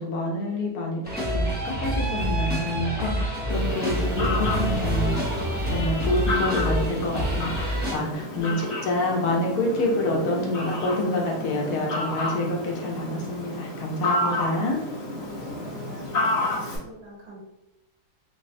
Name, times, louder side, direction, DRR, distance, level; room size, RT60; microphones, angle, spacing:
voice 1, 0.0-5.3 5.6-14.8, left 1 dB, 75° left, -1 dB, 1.3 m, -27 dB
sound 1, 1.0-7.9, right 1 dB, 10° right, 0.5 m, -27 dB
Fowl, 3.5-16.8, left 2 dB, 50° left, 1.3 m, -31 dB
voice 2, 8.3-8.8 15.1-17.4, right 2 dB, 70° right, -5 dB, 1.6 m, -43 dB
5.2 x 2.0 x 2.6 m, 0.93 s
omnidirectional pair, 1.6 m